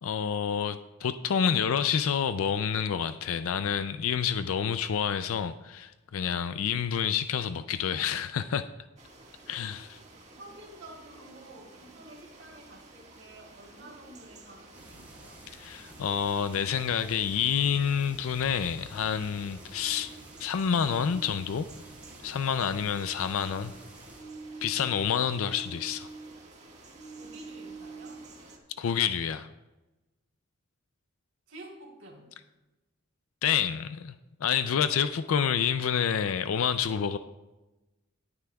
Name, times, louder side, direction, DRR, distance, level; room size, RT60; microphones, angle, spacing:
voice 1, 0.0-8.7 9.5-10.0 15.6-20.1 20.4-21.7 22.2-23.7 24.6-26.1 28.8-29.5 33.4-34.1 34.4-37.2, left 7 dB, 75° left, 11 dB, 0.4 m, -28 dB
sound 1, 9.0-28.6, right 2 dB, 35° right, 1.7 m, -52 dB
voice 2, 10.4-15.4 27.1-28.3 31.5-32.3, right 1 dB, 65° right, -1 dB, 3.6 m, -50 dB
sound 2, 14.7-24.2, right 1 dB, 10° right, 3.6 m, -51 dB
sound 3, 19.8-22.3 22.6-26.5 26.9-28.5, right 3 dB, 30° left, 2.2 m, -47 dB
18.0 x 9.6 x 2.3 m, 1.1 s
head